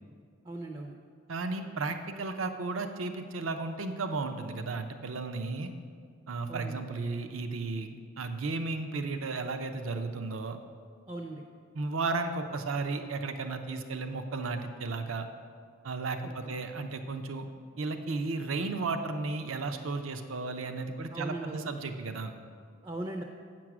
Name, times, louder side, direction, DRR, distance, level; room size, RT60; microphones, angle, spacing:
voice 1, 0.4-1.0 6.5-6.8 11.1-11.4 16.4-16.5 21.1-21.8 22.8-23.2, right 2 dB, 25° right, 2 dB, 0.5 m, -38 dB
voice 2, 1.3-5.7 6.3-10.6 11.7-15.3 15.8-17.5 17.8-22.3, right 3 dB, 70° right, 7 dB, 0.6 m, -34 dB
8.6 x 6.1 x 6.0 m, 2.1 s
head